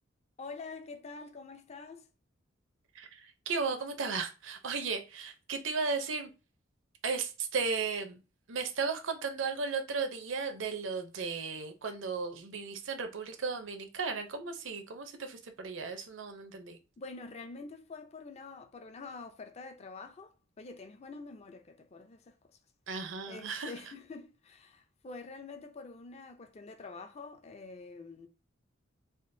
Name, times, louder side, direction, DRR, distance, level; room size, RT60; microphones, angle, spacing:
voice 1, 0.4-2.1 17.0-22.5 23.2-28.3, left 3 dB, 30° left, 0.4 m, -46 dB
voice 2, 2.9-6.3 7.0-8.2 8.5-16.8 22.9-23.7, right 4 dB, 70° right, 0.6 m, -35 dB
3.6 x 2.4 x 2.6 m
head